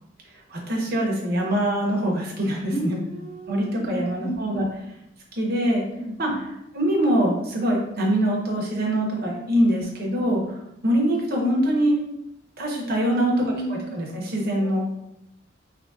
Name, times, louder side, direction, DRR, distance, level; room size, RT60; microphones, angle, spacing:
voice 1, 0.5-3.0 3.5-4.7 5.3-5.8 6.2-6.3 6.7-12.0 12.6-14.8, right 1 dB, 55° right, -2 dB, 1.0 m, -23 dB
voice 2, 2.7-4.7 6.0-6.4 9.7-9.8 13.1-14.0 14.6-14.8, right 1 dB, 40° left, -5 dB, 1.3 m, -32 dB
4.6 x 2.9 x 2.7 m, 0.83 s
head